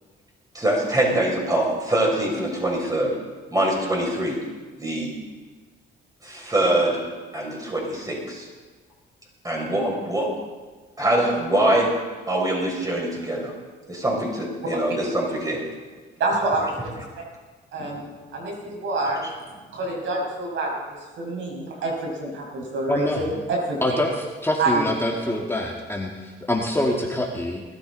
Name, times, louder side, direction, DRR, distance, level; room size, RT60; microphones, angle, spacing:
voice 1, 0.5-3.1 3.5-4.4 4.8-5.1 6.2-7.0 7.3-8.5 9.4-10.3 11.0-11.9 12.3-13.5 13.9-15.6, right 1 dB, 20° right, -2 dB, 6.5 m, -23 dB
voice 2, 16.2-17.0 17.7-18.0 18.3-19.3 19.7-20.7 21.2-24.0 24.6-24.9, right 2 dB, 75° right, -1 dB, 6.0 m, -27 dB
voice 3, 22.9-23.2 23.8-27.6, left 1 dB, 10° left, -1 dB, 2.3 m, -25 dB
20.5 x 14.0 x 4.1 m, 1.4 s
cardioid pair, 90°, 20 cm